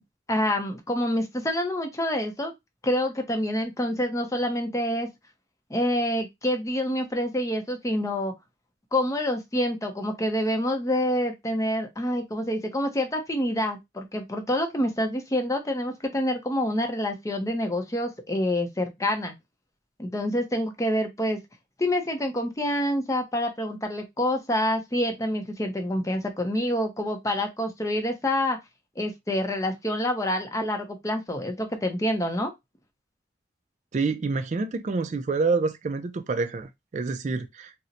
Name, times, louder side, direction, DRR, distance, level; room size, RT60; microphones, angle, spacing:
voice 1, 0.3-2.5 2.8-5.1 5.7-8.3 8.9-19.3 20.0-21.4 21.8-28.6 29.0-32.5, left 1 dB, 15° left, 0.5 m, -27 dB
voice 2, 33.9-37.7, right 4 dB, 40° right, 0.3 m, -27 dB
2.8 x 2.0 x 3.8 m
head